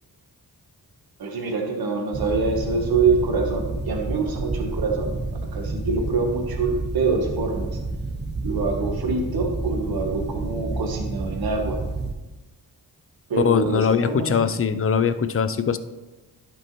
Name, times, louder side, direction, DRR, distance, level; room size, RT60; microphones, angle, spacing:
voice 1, 1.2-5.1 5.5-7.7 8.4-11.8 13.3-14.5, right 4 dB, 70° right, 2 dB, 1.2 m, -25 dB
sound 1, 2.1-12.1, right 3 dB, 30° right, 0.8 m, -30 dB
voice 2, 13.4-15.8, left 7 dB, 35° left, 11 dB, 0.5 m, -21 dB
11.5 x 5.3 x 3.0 m, 1.1 s
cardioid pair, 75°, 38 cm